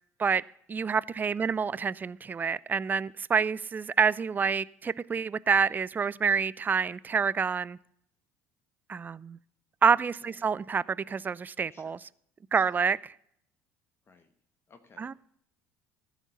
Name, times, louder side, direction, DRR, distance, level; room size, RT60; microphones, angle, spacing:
voice 1, 0.7-7.8 8.9-9.4 9.8-12.0 12.5-13.0 15.0-15.1, right 6 dB, 25° right, 0.3 m, -27 dB
voice 2, 9.9-10.5 11.7-11.9 12.5-12.8 14.0-14.3 14.7-15.1, left 4 dB, 30° left, 1.1 m, -58 dB
14.0 x 5.1 x 6.8 m
hypercardioid pair, 65°, 8 cm